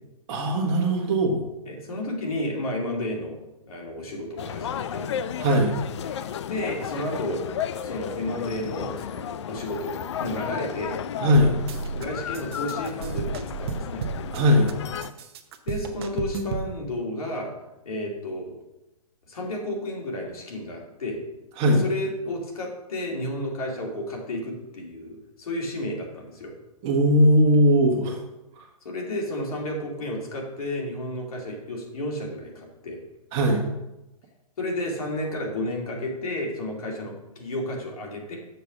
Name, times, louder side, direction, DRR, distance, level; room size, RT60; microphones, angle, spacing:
voice 1, 0.3-1.4 5.4-5.7 11.2-11.5 14.3-14.7 21.6-21.8 26.8-28.2 28.6-28.7 33.3-33.6, equal, 25° right, 0 dB, 1.4 m, -19 dB
voice 2, 1.7-3.4 3.7-5.1 6.1-7.4 7.8-11.0 11.9-14.0 15.7-17.5 17.8-18.5 19.3-21.2 21.7-26.5 28.8-33.0 34.6-38.4, left 1 dB, 70° left, -1 dB, 2.5 m, -32 dB
sound 1, 4.4-15.1, left 9 dB, 50° left, 0.4 m, -33 dB
sound 2, 11.3-12.0 12.3-14.7 15.0-16.7, right 5 dB, 40° right, 0.8 m, -32 dB
6.9 x 4.6 x 6.0 m, 0.94 s
hypercardioid pair, 160°, 19 cm